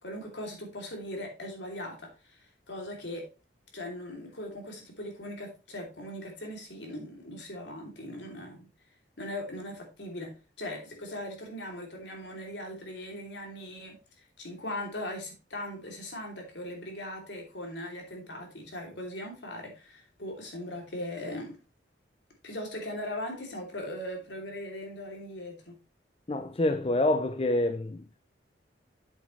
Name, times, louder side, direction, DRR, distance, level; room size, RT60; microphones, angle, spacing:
voice 1, 0.0-3.3 3.7-8.7 9.2-14.0 14.4-21.6 22.4-25.8, left 1 dB, 75° left, 2.9 m, -39 dB
voice 2, 26.3-28.0, left 1 dB, 30° left, 0.5 m, -27 dB
8.6 x 7.2 x 3.1 m
head